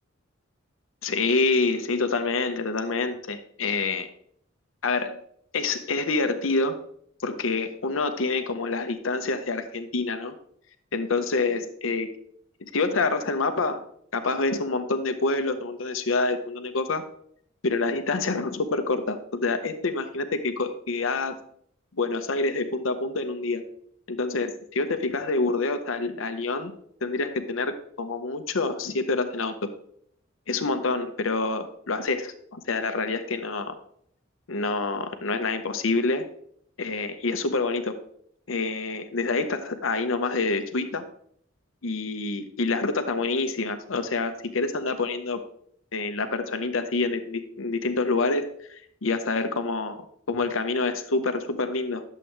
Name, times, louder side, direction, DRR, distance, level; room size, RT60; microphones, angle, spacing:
voice 1, 1.0-4.1 4.8-5.2 5.5-6.8 7.2-10.3 10.9-12.1 12.7-13.9 14.1-17.0 17.6-21.3 22.0-23.7 24.1-26.7 27.0-29.5 30.5-33.8 34.5-36.3 36.8-38.0 38.5-41.0 41.8-45.4 45.9-52.0, left 3 dB, 80° left, 8 dB, 0.8 m, -27 dB
11.0 x 7.5 x 3.3 m, 0.66 s
head